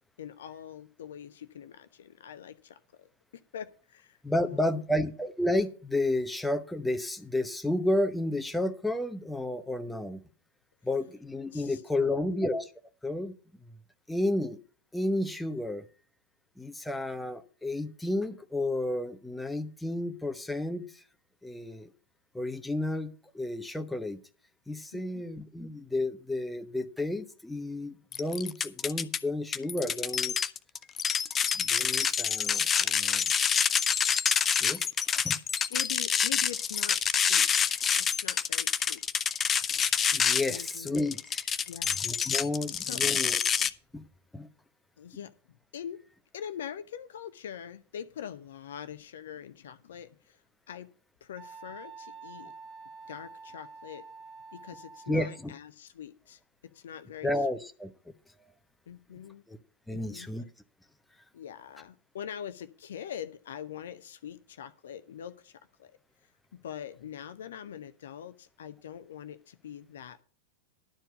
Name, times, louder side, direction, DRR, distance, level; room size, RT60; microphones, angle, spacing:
voice 1, 0.2-3.1 3.3-5.0 11.5-12.4 24.9-25.2 35.7-37.7 38.0-39.0 40.5-41.0 41.6-42.0 42.7-43.0 45.0-46.0 46.3-50.4 50.7-50.9 51.2-52.5 53.1-54.0 54.5-56.4 56.7-57.6 58.9-59.4 59.9-60.3 61.3-65.9 66.5-70.2, left 9 dB, 60° left, 12 dB, 0.7 m, -43 dB
voice 2, 4.2-10.2 10.8-12.7 13.0-13.3 14.1-14.6 14.9-15.8 16.6-21.0 21.4-21.9 22.3-24.2 24.7-30.3 31.5-33.2 34.6-34.9 35.1-35.4 40.1-41.4 42.0-43.4 43.9-44.1 44.3-44.5 55.1-55.5 57.2-57.9 59.5-59.6 59.9-60.4, left 1 dB, 5° left, 8 dB, 0.9 m, -31 dB
sound 1, 28.1-29.2 29.5-43.7, left 7 dB, 25° left, 0.5 m, -27 dB
Wind instrument woodwind instrument, 51.4-55.4, right 4 dB, 25° right, 1.2 m, -48 dB
11.5 x 4.5 x 8.1 m, 0.39 s
figure-of-eight pair, 90°, 0 cm